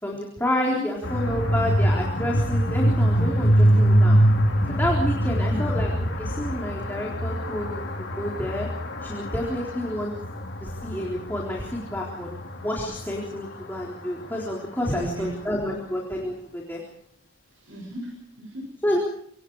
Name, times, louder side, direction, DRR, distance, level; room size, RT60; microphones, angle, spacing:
voice 1, 0.0-4.2 4.7-5.9 6.2-7.8 8.2-8.7 9.0-10.1 10.6-16.8 18.8-19.0, left 1 dB, 10° left, -2 dB, 3.9 m, -29 dB
sound 1, 1.0-14.9, equal, 65° left, 3.6 m, -24 dB
voice 2, 5.2-5.6 14.8-15.4 17.5-18.7, equal, 75° right, 1 dB, 7.3 m, -35 dB
27.0 x 24.5 x 4.9 m, 0.65 s
head